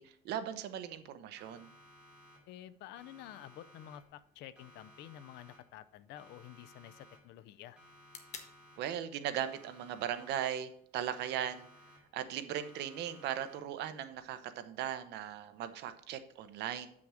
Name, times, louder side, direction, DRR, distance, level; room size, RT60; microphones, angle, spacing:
voice 1, 0.0-1.7 8.8-11.7 12.1-16.9, right 10 dB, 75° right, 10 dB, 0.9 m, -38 dB
Siren, 1.4-2.7 3.0-4.3 4.6-5.9 6.2-7.5 7.8-9.1 9.4-10.7 11.0-12.3 12.6-13.9, left 1 dB, 5° right, 2.8 m, -60 dB
voice 2, 2.5-7.8, left 12 dB, 85° left, 15 dB, 0.6 m, -50 dB
sound 1, 4.0-12.0, left 6 dB, 40° left, 1.2 m, -59 dB
7.6 x 6.0 x 4.9 m, 0.66 s
cardioid pair, 145°, 17 cm